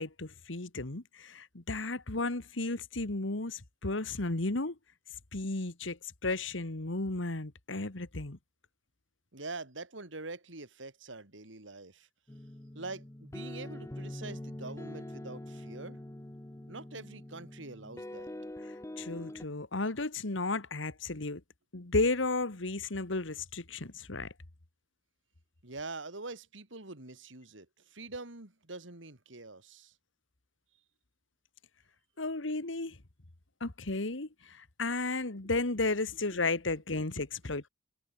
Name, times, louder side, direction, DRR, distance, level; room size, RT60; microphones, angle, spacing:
voice 1, 0.0-4.8 5.3-8.4 19.0-21.4 21.7-24.3 32.2-33.0 33.6-37.7, left 2 dB, 80° left, 1.8 m, -33 dB
voice 2, 9.3-12.1 12.7-16.0 16.7-18.3 25.6-29.9, right 3 dB, 75° right, 3.3 m, -44 dB
sound 1, 12.3-19.4, left 1 dB, 15° left, 0.7 m, -44 dB
head